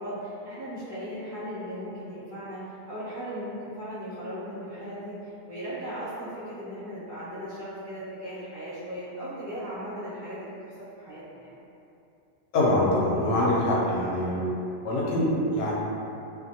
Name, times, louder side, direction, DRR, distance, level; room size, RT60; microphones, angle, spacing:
voice 1, 0.0-11.5, equal, 25° right, -15 dB, 0.7 m, -37 dB
voice 2, 12.5-14.4 14.8-15.7, left 1 dB, 75° left, -6 dB, 0.9 m, -24 dB
2.4 x 2.1 x 2.7 m, 2.8 s
omnidirectional pair, 1.2 m